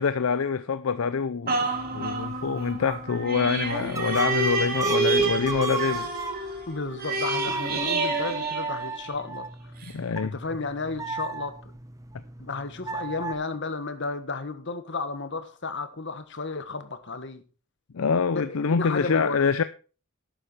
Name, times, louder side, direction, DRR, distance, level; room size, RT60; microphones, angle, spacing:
voice 1, 0.0-6.1 9.9-10.3 17.9-19.6, left 5 dB, 70° left, 0.5 m, -25 dB
sound 1, 1.5-9.3 9.8-9.9, right 3 dB, 45° right, 2.4 m, -29 dB
sound 2, 1.7-6.7 7.2-13.3, right 3 dB, 15° right, 0.8 m, -36 dB
voice 2, 6.7-9.7 10.2-11.8 12.4-17.4 18.3-19.5, left 3 dB, 55° left, 1.4 m, -33 dB
11.5 x 9.0 x 4.3 m
head